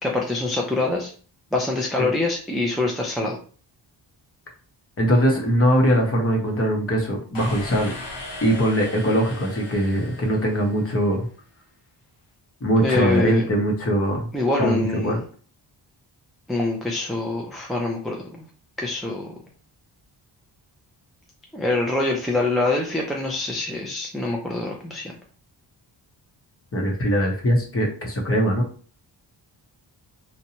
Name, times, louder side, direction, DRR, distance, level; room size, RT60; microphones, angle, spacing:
voice 1, 0.0-1.1 1.5-3.4 12.8-13.5 14.3-15.2 16.5-18.4 18.8-19.3 21.5-25.1, left 2 dB, ahead, -1 dB, 0.4 m, -25 dB
voice 2, 5.0-7.9 8.4-11.3 12.6-14.3 14.6-15.2 26.7-28.6, equal, 30° left, 0 dB, 0.8 m, -21 dB
sound 1, 7.3-11.1, left 2 dB, 70° left, 0.9 m, -38 dB
2.7 x 2.2 x 2.8 m, 0.41 s
wide cardioid pair, 115°, 44 cm